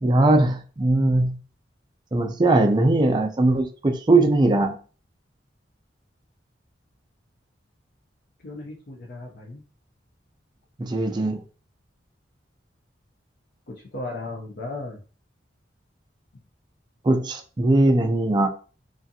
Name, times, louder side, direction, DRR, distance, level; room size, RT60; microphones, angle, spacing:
voice 1, 0.0-1.4 2.1-4.8 10.8-11.4 17.0-18.5, right 2 dB, 25° right, 0.4 m, -20 dB
voice 2, 8.4-9.6 13.7-15.0, left 2 dB, 60° left, 0.5 m, -36 dB
2.5 x 2.4 x 2.6 m
head